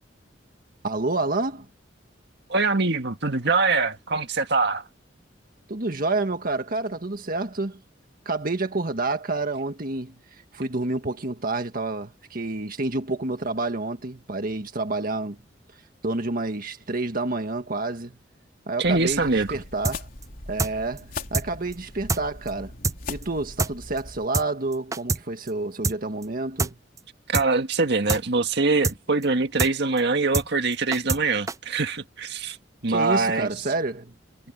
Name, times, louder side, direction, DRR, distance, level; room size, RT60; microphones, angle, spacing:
voice 1, 0.8-1.7 5.7-7.8 8.2-15.4 16.0-18.2 18.7-20.1 20.5-22.7 23.1-26.7 32.9-34.1, right 2 dB, 50° right, 1.7 m, -29 dB
voice 2, 2.5-4.8 18.8-19.6 27.3-32.6 32.8-33.5, right 3 dB, 65° right, 1.9 m, -23 dB
sound 1, 18.8-24.3, left 3 dB, 50° left, 4.1 m, -40 dB
sound 2, 19.8-20.0 20.2-20.3 20.6-20.7 21.0-21.1 21.3-21.5 21.7-21.8 22.1-22.2 22.5-22.6 22.8-23.0 23.2-23.3 23.6-23.7 24.0-24.1 24.3-24.5 24.7-25.2 25.5-25.6 25.8-26.0 26.2-26.3 26.6-26.7 27.0-27.1 27.3-27.5 27.7-27.8 28.1-28.2 28.5-28.6 28.8-29.0 29.2-29.3 29.6-29.7 30.0-30.1 30.3-30.5 30.7-31.2 31.5-31.6, right 3 dB, 15° right, 0.4 m, -25 dB
head